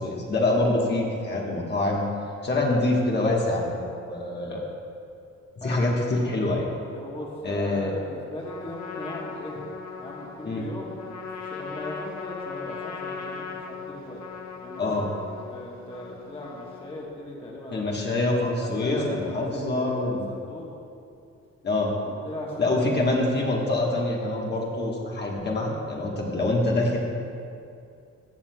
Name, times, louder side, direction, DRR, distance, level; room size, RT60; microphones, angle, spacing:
voice 1, 0.0-2.0 2.4-4.6 5.6-6.7 7.4-7.9 10.4-10.6 14.8-15.1 17.7-20.4 21.6-21.9 22.6-27.0, left 2 dB, 35° left, -3 dB, 1.4 m, -25 dB
voice 2, 6.9-9.6 10.0-11.0 11.4-14.2 14.6-15.0 15.5-18.0 18.6-20.7 22.0-23.3, left 1 dB, 20° left, -4 dB, 1.4 m, -38 dB
Trumpet, 8.4-17.1, left 5 dB, 65° left, 1.1 m, -39 dB
15.0 x 7.2 x 2.3 m, 2.5 s
cardioid pair, 90°, 30 cm